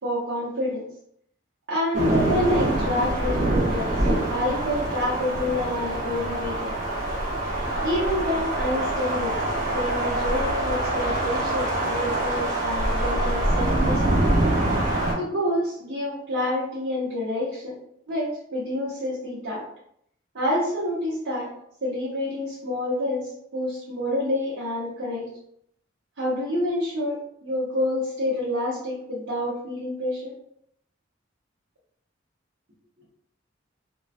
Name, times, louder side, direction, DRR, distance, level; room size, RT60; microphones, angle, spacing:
voice 1, 0.0-0.8 1.7-3.9 4.3-6.7 7.8-9.4 9.7-14.2 15.2-17.7 18.1-19.6 20.3-21.5 21.8-25.3 26.2-30.3, left 1 dB, 80° right, -9 dB, 0.8 m, -28 dB
sound 1, 1.9-15.1, right 1 dB, 45° right, 0.7 m, -25 dB
2.4 x 2.2 x 2.4 m, 0.70 s
head